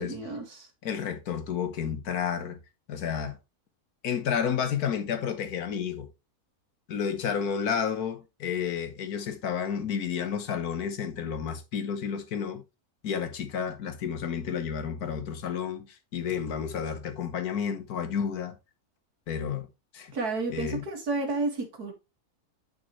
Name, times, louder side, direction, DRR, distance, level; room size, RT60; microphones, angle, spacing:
voice 1, 0.0-0.7 20.1-21.9, right 3 dB, 85° right, 2.6 m, -31 dB
voice 2, 0.8-2.6 2.9-3.4 4.0-6.1 6.9-12.6 13.0-18.5 19.3-19.7 19.9-20.1 20.5-20.8, left 7 dB, 80° left, 1.6 m, -31 dB
8.8 x 5.8 x 3.1 m
omnidirectional pair, 1.6 m